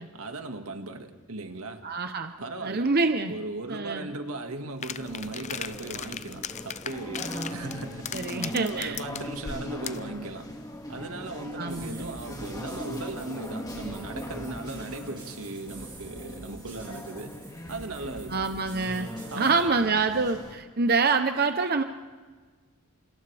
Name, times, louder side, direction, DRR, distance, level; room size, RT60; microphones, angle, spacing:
voice 1, 0.0-1.8 2.4-2.9 3.3-10.5 10.9-17.3 17.7-18.5 19.3-20.0, right 2 dB, 80° right, 5 dB, 2.0 m, -38 dB
voice 2, 1.8-2.3 2.6-3.3 3.7-4.1 7.3-7.7 8.1-9.0 11.6-12.1 18.3-19.1 19.3-21.8, right 4 dB, 45° right, 7 dB, 0.9 m, -26 dB
sound 1, 4.8-10.1, left 8 dB, 35° left, 0.6 m, -38 dB
sound 2, 5.0-20.5, equal, 15° left, 2.1 m, -40 dB
sound 3, 11.7-19.7, right 2 dB, 25° right, 5.8 m, -48 dB
29.0 x 28.5 x 3.5 m, 1.4 s
head